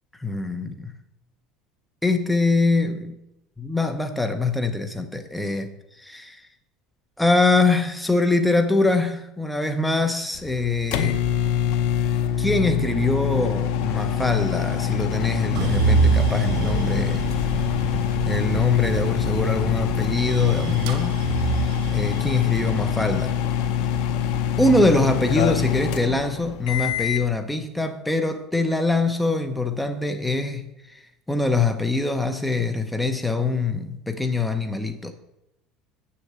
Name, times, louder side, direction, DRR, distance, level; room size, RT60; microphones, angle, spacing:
voice 1, 0.2-1.0 2.0-3.2 3.6-6.5 7.2-11.2 12.4-17.3 18.2-21.2 21.9-23.3 24.6-35.1, left 2 dB, 5° left, 7 dB, 0.8 m, -23 dB
sound 1, 10.3-27.3, left 9 dB, 70° left, 0.8 m, -24 dB
sound 2, 15.5-25.7 26.2-27.0, right 5 dB, 70° right, 1.7 m, -27 dB
7.7 x 6.7 x 7.5 m, 0.84 s
cardioid pair, 155°, 0 cm